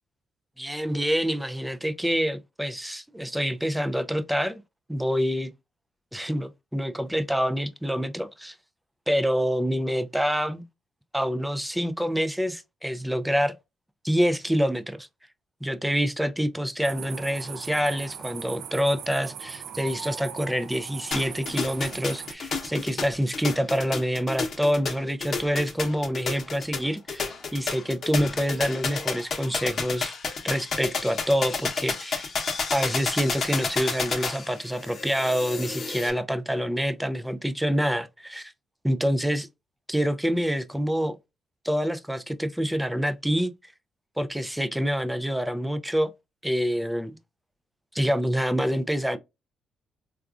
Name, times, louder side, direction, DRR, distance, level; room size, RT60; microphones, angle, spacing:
voice 1, 0.6-4.6 4.9-5.5 6.1-8.6 9.1-10.6 11.1-13.5 14.0-15.1 15.6-30.1 30.4-32.3 32.7-38.5 38.8-39.5 39.9-41.2 41.6-43.5 44.2-46.1 46.4-47.2 47.9-49.2, equal, 5° right, 0.3 m, -26 dB
sound 1, 16.8-22.3, right 8 dB, 80° right, 0.4 m, -39 dB
sound 2, 21.1-36.1, left 4 dB, 50° left, 0.8 m, -31 dB
3.7 x 2.3 x 2.3 m
cardioid pair, 90°, 0 cm